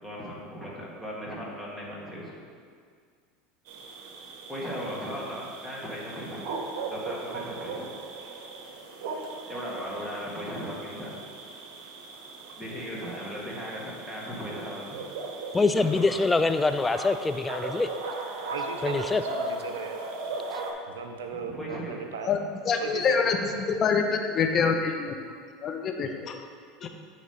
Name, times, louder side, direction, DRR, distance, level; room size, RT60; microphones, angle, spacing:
voice 1, 0.0-2.3 4.5-6.5 6.9-7.9 9.5-11.2 12.5-15.0 15.8-16.2 21.4-22.0, equal, 5° right, -5 dB, 1.8 m, -37 dB
sound 1, 3.7-20.7, right 3 dB, 65° right, 0.9 m, -38 dB
voice 2, 15.5-17.9 18.8-19.2, left 3 dB, 15° left, 10 dB, 0.3 m, -24 dB
voice 3, 18.5-20.0 20.9-22.4 22.8-23.7, right 6 dB, 85° right, 5 dB, 0.5 m, -37 dB
voice 4, 22.6-25.2 25.6-26.4 26.8-26.9, left 5 dB, 40° left, 4 dB, 0.7 m, -26 dB
8.9 x 3.1 x 5.4 m, 2.1 s
hypercardioid pair, 95°, 0 cm